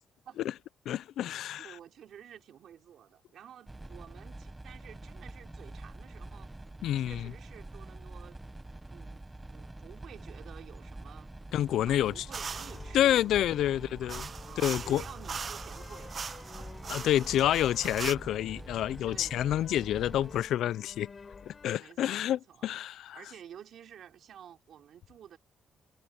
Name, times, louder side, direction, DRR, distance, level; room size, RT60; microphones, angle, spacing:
voice 1, 0.9-1.8 6.8-7.3 11.5-12.2 12.9-14.3 14.6-15.0 16.9-21.1 21.5-23.2, left 12 dB, 75° left, 0.5 m, -28 dB
voice 2, 1.6-6.5 7.0-8.4 8.9-11.3 11.8-16.1 16.5-16.7 17.9-18.0 19.1-19.4 21.8-22.7 23.1-25.4, right 9 dB, 55° right, 3.6 m, -51 dB
sound 1, 3.7-20.4, right 2 dB, 10° right, 1.1 m, -46 dB
sound 2, 11.8-21.8, left 5 dB, 30° left, 4.6 m, -50 dB
sound 3, 12.3-12.8 14.1-18.2, right 6 dB, 30° right, 0.6 m, -40 dB
cardioid pair, 160°, 0 cm